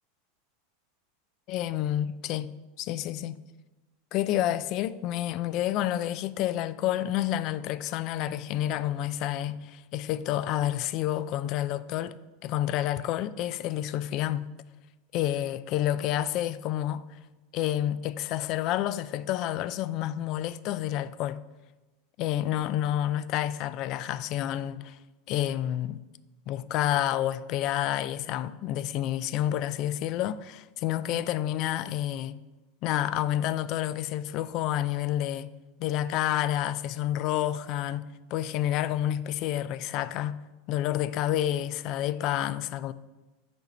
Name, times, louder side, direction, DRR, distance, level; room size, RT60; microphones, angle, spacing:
voice 1, 1.5-3.4 4.1-12.1 12.4-14.5 15.1-17.0 17.5-21.4 22.2-25.0 25.3-26.0 26.5-32.4 32.8-35.5 35.8-40.4 40.7-42.9, left 12 dB, 45° left, 0.3 m, -29 dB
8.1 x 4.4 x 5.3 m
supercardioid pair, 135°, 0 cm